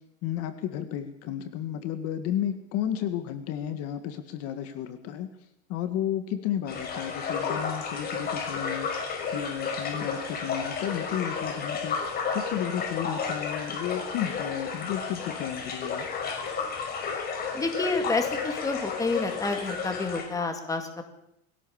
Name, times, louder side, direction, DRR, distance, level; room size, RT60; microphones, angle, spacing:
voice 1, 0.2-5.3 5.7-16.1, left 10 dB, 40° left, 8 dB, 1.8 m, -33 dB
sound 1, 6.7-20.2, left 5 dB, 25° left, 5.4 m, -32 dB
voice 2, 17.5-21.0, left 3 dB, 10° left, 4 dB, 2.3 m, -29 dB
21.5 x 17.0 x 7.2 m, 0.80 s
supercardioid pair, 160°, 36 cm